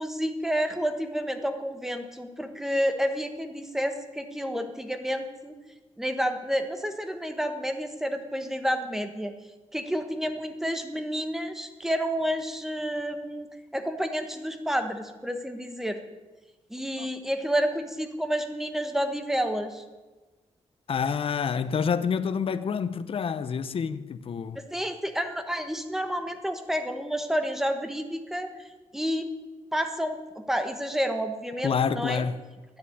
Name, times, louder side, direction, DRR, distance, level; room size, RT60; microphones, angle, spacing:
voice 1, 0.0-5.6 6.0-9.3 9.7-16.0 16.7-19.8 24.7-28.5 28.9-29.3 29.7-32.2, equal, 5° right, 1.3 m, -30 dB
voice 2, 20.9-24.6 31.6-32.4, left 6 dB, 55° left, 0.8 m, -28 dB
12.0 x 10.0 x 9.5 m
wide cardioid pair, 160°, 12 cm